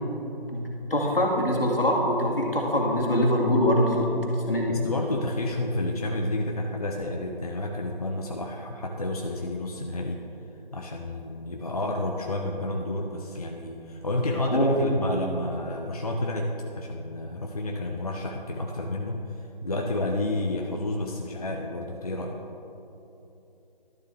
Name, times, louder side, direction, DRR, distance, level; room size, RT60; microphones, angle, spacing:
voice 1, 0.5-4.1 4.5-4.8 14.5-14.8, left 1 dB, 75° left, -1 dB, 1.9 m, -23 dB
voice 2, 4.7-10.2 10.7-22.4, left 1 dB, 40° left, 1 dB, 0.5 m, -30 dB
12.0 x 7.5 x 3.2 m, 3.0 s
figure-of-eight pair, 155°, 29 cm